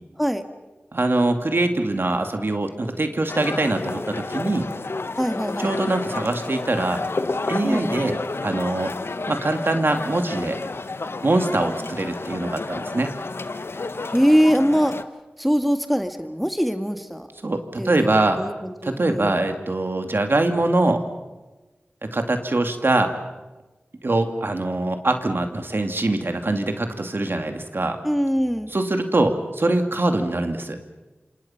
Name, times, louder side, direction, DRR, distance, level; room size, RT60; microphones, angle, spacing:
voice 1, 0.9-4.7 5.6-7.0 7.5-8.9 9.3-10.6 11.2-13.1 17.4-18.4 18.8-21.0 22.1-23.1 24.0-28.0 28.7-30.8, right 2 dB, 60° right, 5 dB, 2.5 m, -23 dB
sound 1, 3.3-15.0, left 3 dB, 65° left, 1.0 m, -31 dB
voice 2, 5.2-5.8 7.6-8.1 14.1-14.9 15.4-17.3 17.8-19.3 28.0-28.7, equal, ahead, 7 dB, 1.7 m, -22 dB
27.0 x 26.5 x 5.8 m, 1.2 s
cardioid pair, 40°, 4 cm